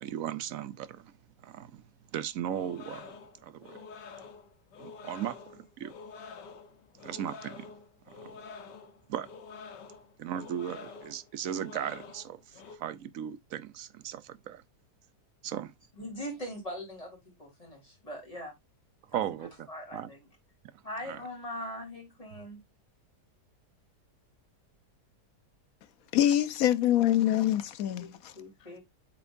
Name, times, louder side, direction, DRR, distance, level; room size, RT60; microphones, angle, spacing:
voice 1, 0.0-1.1 1.4-1.8 2.1-3.2 3.4-3.8 4.8-5.9 7.0-7.7 8.1-8.4 9.1-9.3 10.2-12.4 12.7-14.6 15.4-15.7 19.1-20.1 21.1-21.2, right 10 dB, 65° right, 0.9 m, -37 dB
sound 1, 2.5-12.8, left 5 dB, 90° left, 1.6 m, -47 dB
voice 2, 15.9-18.6 19.1-20.2 20.8-22.6 28.0-28.8, equal, 20° left, 3.8 m, -41 dB
voice 3, 26.1-28.3, left 12 dB, 70° left, 1.0 m, -25 dB
8.3 x 4.5 x 2.6 m
omnidirectional pair, 1.8 m